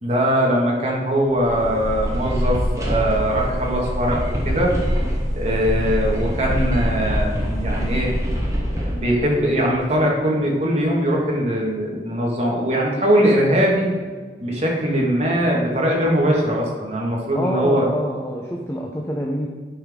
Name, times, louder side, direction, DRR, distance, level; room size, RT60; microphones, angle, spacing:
voice 1, 0.0-4.8 5.3-8.1 8.7-13.9 14.4-17.9, equal, 35° right, -2 dB, 1.6 m, -21 dB
sound 1, 1.3-9.8, equal, 15° right, 1.3 m, -24 dB
voice 2, 17.3-19.5, equal, 15° left, -1 dB, 0.6 m, -26 dB
10.0 x 5.6 x 3.6 m, 1.5 s
head